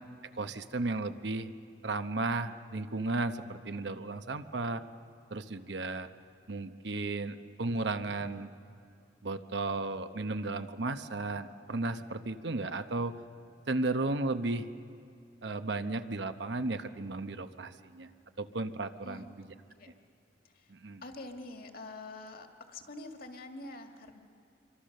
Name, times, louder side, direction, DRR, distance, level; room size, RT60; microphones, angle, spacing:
voice 1, 0.4-1.5 1.8-4.8 5.3-6.1 6.5-8.5 9.2-13.1 13.7-14.7 15.4-18.1 18.4-19.2 20.7-21.0, right 2 dB, 70° right, 9 dB, 1.0 m, -34 dB
voice 2, 19.0-19.9 20.4-20.7 21.0-24.2, left 2 dB, 55° left, 4 dB, 2.0 m, -46 dB
26.5 x 24.0 x 6.6 m, 2.3 s
head